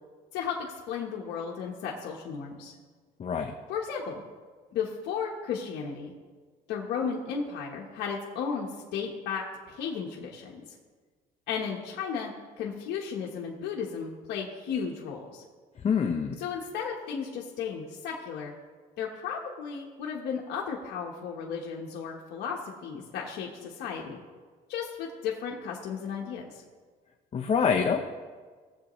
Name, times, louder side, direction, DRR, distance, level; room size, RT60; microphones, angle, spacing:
voice 1, 0.3-2.7 3.7-4.2 4.7-6.1 6.7-10.6 11.5-15.4 16.4-18.5 19.0-24.2 24.7-26.6, left 6 dB, 80° left, -2 dB, 1.3 m, -34 dB
voice 2, 3.2-3.5 15.8-16.4 27.3-28.0, left 6 dB, 35° left, 3 dB, 0.8 m, -25 dB
18.5 x 7.6 x 3.2 m, 1.5 s
cardioid pair, 110°, 17 cm